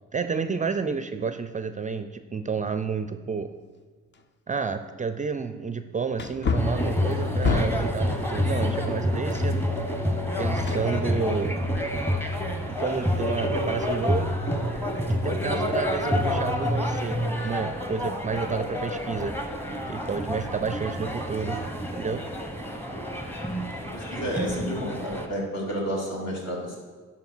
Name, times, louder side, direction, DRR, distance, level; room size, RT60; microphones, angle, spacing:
voice 1, 0.1-3.5 4.5-9.6 10.4-11.6 12.8-14.3 15.1-19.3 19.9-21.6 21.9-22.2, right 5 dB, 25° right, 10 dB, 0.4 m, -30 dB
Wood, 4.1-4.2 4.8-4.9 6.1-8.0 10.6-11.4 11.8-11.9, left 5 dB, 35° left, 0.7 m, -28 dB
sound 1, 6.6-25.3, equal, 5° left, 1.1 m, -28 dB
voice 2, 23.9-26.8, equal, 60° left, -3 dB, 3.0 m, -31 dB
10.5 x 4.3 x 6.1 m, 1.4 s
cardioid pair, 90°, 30 cm